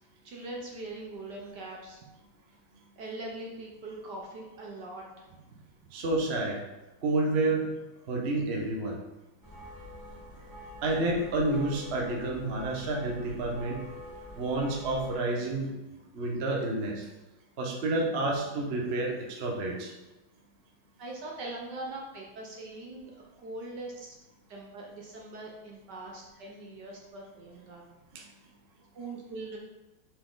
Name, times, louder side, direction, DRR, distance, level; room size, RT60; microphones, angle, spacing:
voice 1, 0.2-2.1 3.0-5.4 21.0-24.2 24.5-27.9 28.9-29.6, right 2 dB, 60° right, -1 dB, 1.3 m, -42 dB
voice 2, 5.9-6.6 7.0-7.7 8.1-9.0 10.8-13.8 14.4-15.7 16.1-17.1 17.6-19.9 28.1-28.2, right 2 dB, 40° right, -1 dB, 1.0 m, -29 dB
sound 1, 9.4-15.1, left 1 dB, 25° right, 0.5 m, -46 dB
6.9 x 4.6 x 3.9 m, 1.1 s
omnidirectional pair, 2.3 m